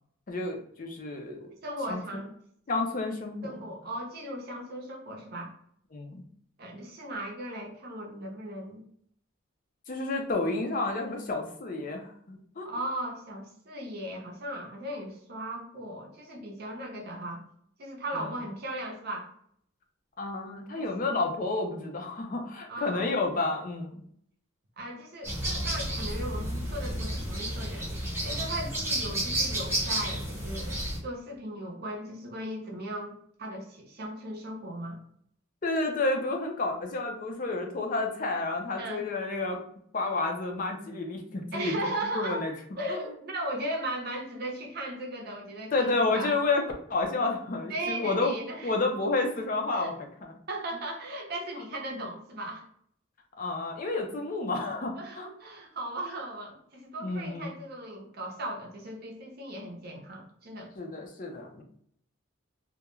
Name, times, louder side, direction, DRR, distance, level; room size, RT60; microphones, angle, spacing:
voice 1, 0.3-1.5 1.9-2.0 2.7-3.5 5.9-6.2 9.9-12.7 18.1-18.3 20.2-24.0 35.6-39.6 39.9-42.5 42.9-43.0 45.7-46.6 46.9-48.3 48.6-50.3 53.4-55.3 57.0-57.5 60.8-61.6, left 3 dB, 40° left, 3 dB, 0.4 m, -30 dB
voice 2, 1.6-2.3 3.4-5.5 6.6-8.8 12.6-17.4 17.8-19.3 20.8-20.9 22.7-23.0 24.8-27.9 28.2-35.0 38.8-39.1 41.5-42.4 42.8-46.4 47.7-48.7 49.7-49.9 50.5-52.6 55.0-60.7, right 1 dB, 50° right, 1 dB, 0.6 m, -37 dB
sound 1, 25.2-31.0, right 1 dB, 10° right, 0.9 m, -31 dB
2.3 x 2.1 x 2.9 m, 0.66 s
head